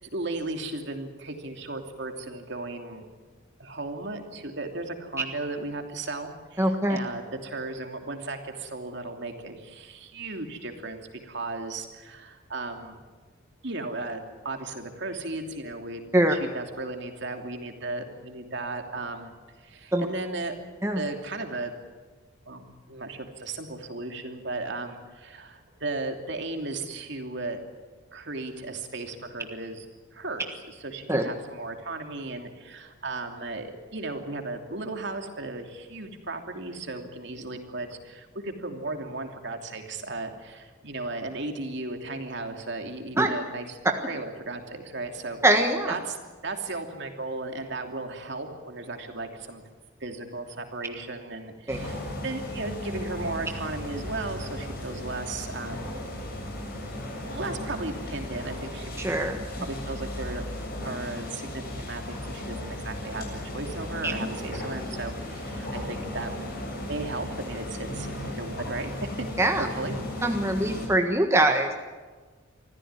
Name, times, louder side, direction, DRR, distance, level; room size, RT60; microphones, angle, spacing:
voice 1, 0.0-3.1 3.6-13.0 13.6-16.0 16.3-20.5 20.9-21.7 22.5-27.6 28.1-29.9 30.1-43.8 44.1-45.4 45.9-46.2 46.4-49.6 50.0-56.2 57.2-58.9 59.2-59.3 59.6-60.4 60.8-66.3 66.9-69.2 69.6-70.0, right 2 dB, 60° right, 4 dB, 2.9 m, -35 dB
voice 2, 6.6-7.0 16.1-16.4 19.9-20.1 20.8-21.0 31.1-31.2 43.2-43.3 45.4-45.9 51.7-51.8 59.0-59.4 64.0-64.1 69.4-69.7 70.2-71.8, right 1 dB, 15° right, 4 dB, 1.4 m, -23 dB
sound 1, 51.7-70.9, left 1 dB, 50° left, 7.5 m, -36 dB
25.0 x 15.5 x 9.7 m, 1.4 s
head